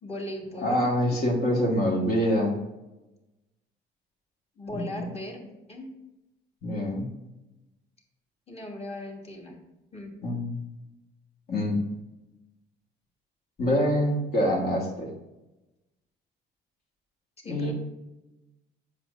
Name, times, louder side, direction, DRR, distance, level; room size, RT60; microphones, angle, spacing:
voice 1, 0.0-0.9 4.6-5.9 8.5-9.6 9.9-10.1 17.4-17.7, left 1 dB, 35° left, -1 dB, 1.5 m, -38 dB
voice 2, 0.6-2.6 4.7-5.1 6.6-7.1 10.2-10.6 11.5-11.8 13.6-15.1 17.4-17.7, equal, 60° left, -1 dB, 1.5 m, -25 dB
7.5 x 5.1 x 2.5 m, 1.0 s
cardioid pair, 95°, 19 cm